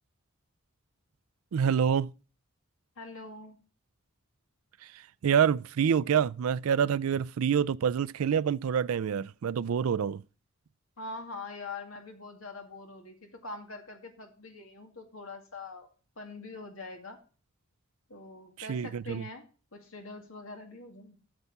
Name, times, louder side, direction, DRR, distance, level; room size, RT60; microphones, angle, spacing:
voice 1, 1.5-2.1 5.2-10.2 18.7-19.2, right 7 dB, 80° right, 0.4 m, -27 dB
voice 2, 3.0-3.6 11.0-15.9 16.2-17.2 18.1-19.4 19.7-21.2, left 3 dB, 70° left, 2.2 m, -43 dB
8.1 x 7.1 x 5.5 m
head